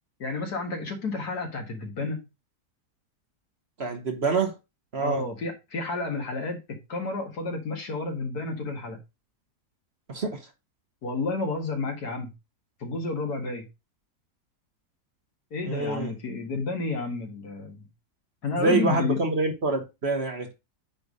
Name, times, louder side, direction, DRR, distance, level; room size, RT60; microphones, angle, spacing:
voice 1, 0.2-2.2 5.0-9.0 11.0-12.3 12.8-13.7 15.5-17.8 18.4-19.2, left 3 dB, 70° left, 2.2 m, -31 dB
voice 2, 3.8-4.6 4.9-5.2 10.1-10.5 15.7-16.1 18.6-20.5, right 3 dB, 45° right, 1.3 m, -26 dB
9.1 x 3.4 x 5.2 m
omnidirectional pair, 1.7 m